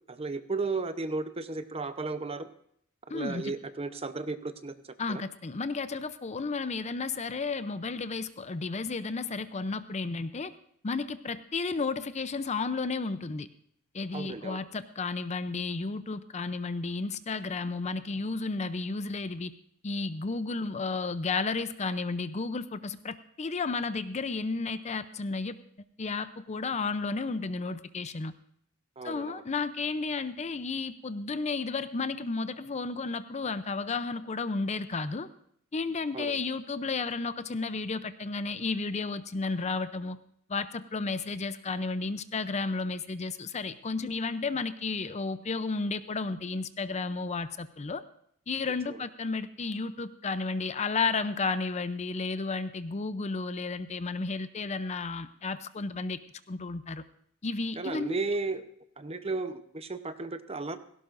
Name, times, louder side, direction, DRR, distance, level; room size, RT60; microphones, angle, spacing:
voice 1, 0.1-2.5 3.1-4.7 5.1-5.2 14.1-14.6 29.0-29.4 36.1-36.4 57.8-58.6 59.0-60.8, right 3 dB, 30° right, 10 dB, 0.8 m, -34 dB
voice 2, 3.1-3.5 5.0-10.5 10.8-13.5 13.9-19.5 19.8-25.6 26.0-28.3 29.0-35.3 35.7-40.2 40.5-48.0 48.5-56.2 56.5-57.0 57.4-58.2, left 4 dB, 35° left, 12 dB, 0.6 m, -32 dB
17.0 x 17.0 x 2.6 m, 0.67 s
head